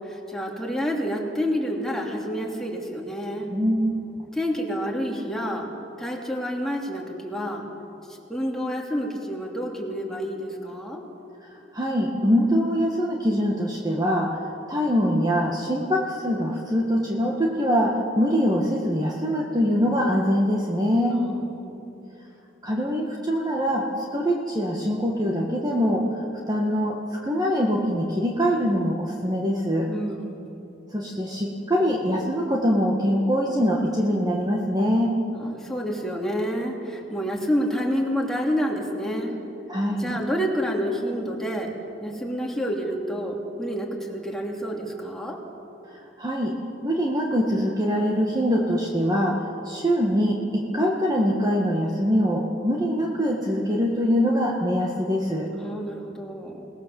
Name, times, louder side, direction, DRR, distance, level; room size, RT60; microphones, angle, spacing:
voice 1, 0.0-3.5 4.3-5.7 6.0-7.7 8.3-11.0 21.0-21.9 29.9-30.5 35.3-39.4 40.0-41.7 42.0-45.4 55.5-56.7, equal, 5° left, -1 dB, 2.9 m, -29 dB
voice 2, 3.5-4.1 11.7-14.4 14.7-21.2 22.6-26.1 26.5-29.9 30.9-35.2 39.7-40.2 46.2-46.5 46.8-55.5, equal, 20° right, -1 dB, 1.9 m, -23 dB
29.0 x 19.5 x 7.2 m, 2.8 s
head